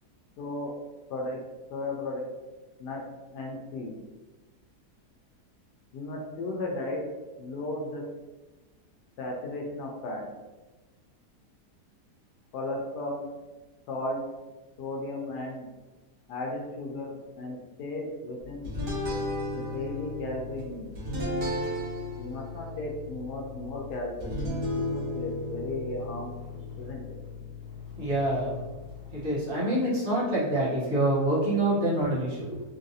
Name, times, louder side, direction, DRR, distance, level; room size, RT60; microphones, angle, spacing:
voice 1, 0.4-0.7 1.1-1.4 1.7-2.3 2.8-3.0 3.3-3.9 5.9-7.0 7.4-8.0 9.2-10.2 12.5-13.3 13.9-14.2 14.8-15.7 16.3-18.7 19.5-20.9 22.2-24.4 24.7-26.3 26.8-27.1, left 2 dB, 80° left, -1 dB, 1.1 m, -35 dB
sound 1, 18.6-29.3, left 1 dB, 80° right, 1.9 m, -35 dB
voice 2, 27.7-28.6 29.1-32.6, right 1 dB, 45° right, -8 dB, 1.3 m, -26 dB
3.8 x 2.5 x 2.7 m, 1.2 s
omnidirectional pair, 1.7 m